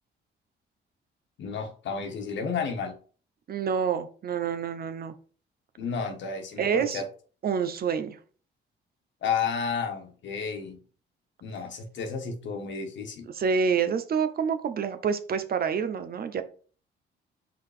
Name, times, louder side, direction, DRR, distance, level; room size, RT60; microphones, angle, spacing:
voice 1, 1.4-3.0 5.8-7.0 9.2-10.8 11.4-13.3, left 6 dB, 70° left, 5 dB, 1.4 m, -32 dB
voice 2, 3.5-5.1 6.6-7.0 7.4-8.2 13.3-16.4, right 6 dB, 50° right, 9 dB, 0.8 m, -27 dB
5.2 x 3.9 x 5.0 m, 0.41 s
cardioid pair, 90°, 20 cm